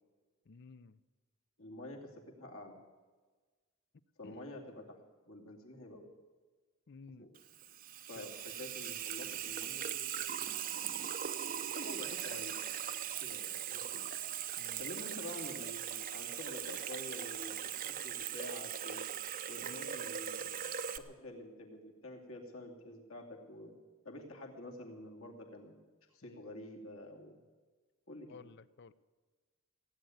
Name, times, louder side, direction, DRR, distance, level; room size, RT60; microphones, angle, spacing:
voice 1, 0.5-1.0 4.2-4.4 6.9-7.3 8.1-8.3 14.6-14.9 19.6-19.9 26.2-26.4 28.3-28.9, left 4 dB, 50° left, 17 dB, 0.5 m, -54 dB
voice 2, 1.6-2.8 4.2-5.0 5.3-6.0 7.2-7.3 8.1-11.1 11.6-12.6 13.2-14.0 14.8-19.0 19.5-23.8 24.0-25.7 26.1-27.4 28.1-28.4, left 1 dB, 70° left, 1 dB, 2.5 m, -48 dB
Water tap faucet / Sink (filling or washing), 7.4-21.0, right 10 dB, 40° right, 0.6 m, -40 dB
16.5 x 9.2 x 9.3 m, 1.4 s
head